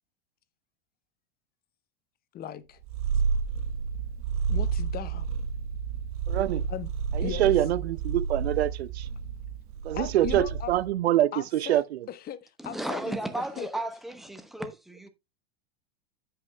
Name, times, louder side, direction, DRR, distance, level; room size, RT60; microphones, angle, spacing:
voice 1, 2.3-2.8 4.5-5.3 6.7-6.9 7.2-7.5 9.9-10.8 11.3-11.8 12.1-13.7, left 11 dB, 30° left, 0.7 m, -38 dB
Purr, 2.8-10.9, right 6 dB, 45° right, 1.2 m, -30 dB
voice 2, 6.3-6.7 7.1-9.1 9.8-12.1, right 13 dB, 85° right, 0.5 m, -25 dB
voice 3, 12.6-15.1, right 1 dB, ahead, 1.0 m, -34 dB
15.0 x 5.7 x 2.2 m
hypercardioid pair, 105°, 31 cm